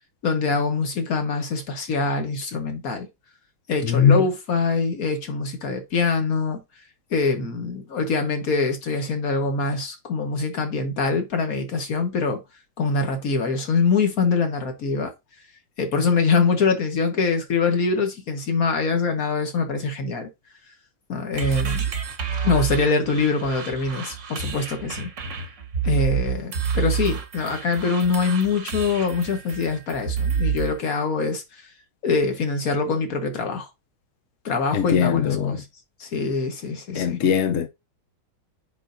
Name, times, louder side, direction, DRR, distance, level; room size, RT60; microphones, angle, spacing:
voice 1, 0.2-3.1 3.7-6.6 7.1-12.4 12.8-15.1 15.8-20.3 21.1-21.8 22.4-25.1 25.8-31.4 32.0-33.7 34.4-35.6 36.0-37.2, left 4 dB, 50° left, 1.7 m, -24 dB
voice 2, 3.8-4.2 34.7-35.6 36.9-37.7, left 7 dB, 70° left, 0.7 m, -20 dB
sound 1, 21.3-30.8, right 7 dB, 45° right, 1.2 m, -28 dB
9.0 x 4.0 x 2.6 m
omnidirectional pair, 2.2 m